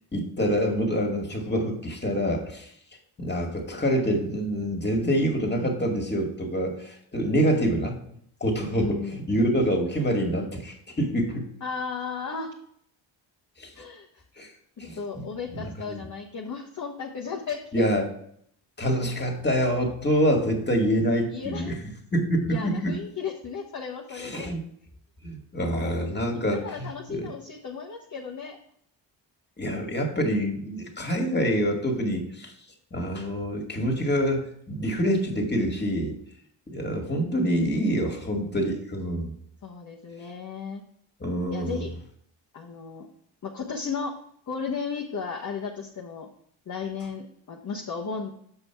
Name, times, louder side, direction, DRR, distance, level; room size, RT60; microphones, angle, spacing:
voice 1, 0.1-2.7 3.2-8.0 8.4-11.5 13.6-13.7 14.4-14.5 14.8-15.2 15.9-16.0 17.7-18.1 18.8-21.8 22.1-22.9 24.2-24.6 25.2-27.3 29.6-32.5 32.9-36.2 36.7-39.3 41.2-41.8, equal, 20° left, 3 dB, 2.0 m, -26 dB
voice 2, 8.7-9.2 11.6-12.5 13.8-14.1 14.8-17.6 21.3-21.7 22.5-24.5 26.3-28.6 39.6-40.8 41.5-41.9 42.5-43.1 43.4-44.1 44.5-46.3 46.7-48.3, left 5 dB, 35° left, -2 dB, 1.2 m, -34 dB
6.9 x 5.5 x 4.5 m, 0.67 s
cardioid pair, 75°, 48 cm